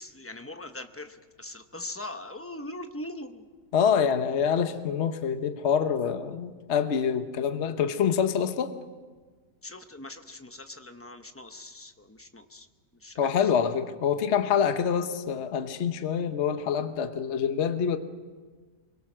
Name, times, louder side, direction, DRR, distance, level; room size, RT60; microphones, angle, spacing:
voice 1, 0.0-3.4 9.6-12.7 13.0-13.3, left 1 dB, 15° left, 7 dB, 0.4 m, -41 dB
voice 2, 3.7-8.7 13.2-18.0, left 7 dB, 45° left, 8 dB, 1.1 m, -26 dB
24.5 x 23.0 x 6.2 m, 1.4 s
omnidirectional pair, 1.9 m